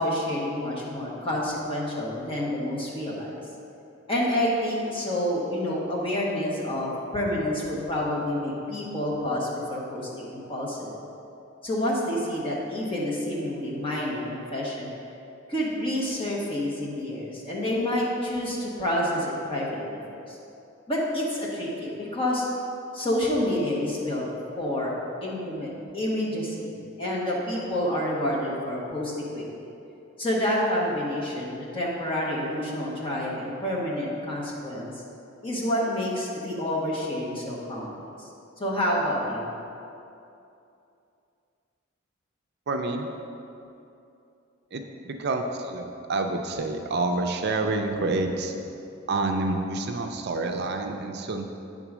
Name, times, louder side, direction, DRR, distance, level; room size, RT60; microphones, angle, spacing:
voice 1, 0.0-3.4 4.1-10.9 11.6-14.9 15.5-20.4 20.9-22.4 22.9-24.3 24.6-24.9 25.2-26.7 27.0-29.7 30.2-34.9 35.4-38.3 38.6-39.5, left 1 dB, 25° left, -5 dB, 1.5 m, -28 dB
voice 2, 42.7-43.1 44.7-48.5 49.1-51.5, right 2 dB, 55° right, 4 dB, 0.5 m, -28 dB
9.1 x 3.9 x 6.1 m, 2.7 s
head